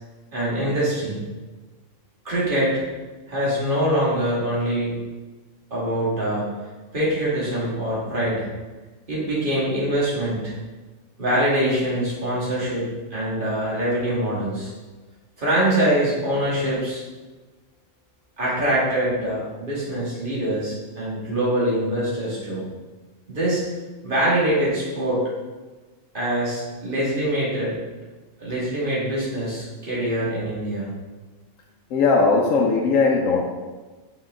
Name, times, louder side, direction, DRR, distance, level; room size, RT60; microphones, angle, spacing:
voice 1, 0.3-1.2 2.2-2.8 3.3-5.0 5.7-6.5 6.9-8.5 9.1-10.6 11.2-14.7 15.4-17.0 18.4-22.6 23.3-23.7 24.0-25.2 26.1-27.8 28.4-30.9, right 1 dB, 40° right, -7 dB, 2.4 m, -24 dB
voice 2, 31.9-33.4, left 4 dB, 80° left, 1 dB, 1.1 m, -18 dB
6.7 x 5.7 x 3.7 m, 1.3 s
omnidirectional pair, 1.4 m